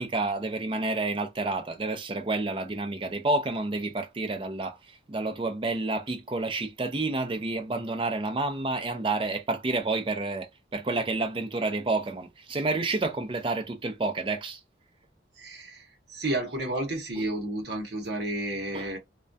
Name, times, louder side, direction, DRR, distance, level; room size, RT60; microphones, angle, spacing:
voice 1, 0.0-4.8 5.1-14.6 17.2-17.3 18.7-18.9, right 2 dB, 25° right, 0.4 m, -29 dB
voice 2, 15.4-19.0, right 1 dB, 65° right, 0.8 m, -31 dB
2.2 x 2.2 x 2.5 m
head